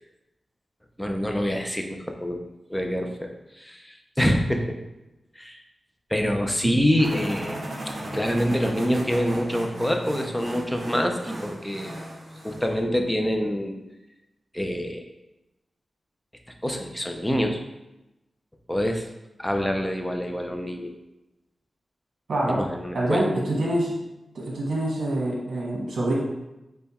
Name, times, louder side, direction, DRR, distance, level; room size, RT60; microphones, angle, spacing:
voice 1, 1.0-2.4 2.7-4.8 5.4-5.6 6.1-7.6 8.1-11.9 12.4-13.8 14.5-15.0 16.6-17.6 18.7-19.0 19.4-20.9 22.5-23.2, equal, 5° left, 3 dB, 0.4 m, -26 dB
sound 1, 7.0-12.8, right 1 dB, 35° right, 1.0 m, -36 dB
voice 2, 22.3-22.6 22.9-23.9 24.3-26.1, right 1 dB, 60° right, -3 dB, 1.3 m, -25 dB
5.4 x 2.2 x 4.1 m, 0.96 s
wide cardioid pair, 165°, 0 cm